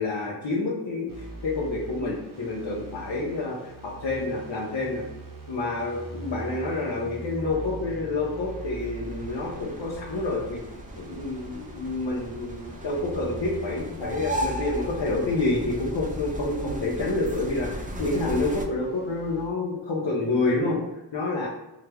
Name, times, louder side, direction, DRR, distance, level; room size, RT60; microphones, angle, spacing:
voice 1, 0.0-5.0 5.5-10.6 11.0-20.8 21.1-21.5, left 2 dB, 70° left, -5 dB, 0.9 m, -28 dB
sound 1, 1.1-19.5, right 1 dB, 50° right, 0.9 m, -42 dB
sound 2, 8.2-18.7, right 1 dB, 20° right, 0.4 m, -37 dB
4.7 x 2.3 x 3.4 m, 0.95 s
wide cardioid pair, 80°, 44 cm